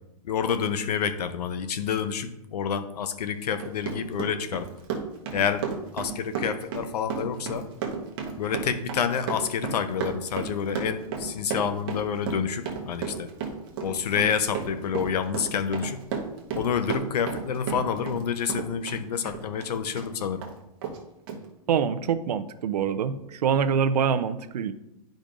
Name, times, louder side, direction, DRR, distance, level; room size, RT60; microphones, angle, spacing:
voice 1, 0.2-4.7 5.3-5.6 5.9-7.7 8.4-13.3 13.8-16.0 16.5-20.4, left 7 dB, 75° left, 10 dB, 0.8 m, -28 dB
Run, 3.4-18.2 18.5-20.1 20.4-20.5 20.8-21.0 21.3-21.4, right 6 dB, 35° right, 1.0 m, -33 dB
voice 2, 21.7-24.7, right 7 dB, 80° right, 11 dB, 0.6 m, -25 dB
10.5 x 5.1 x 2.6 m, 0.88 s
hypercardioid pair, 165°, 20 cm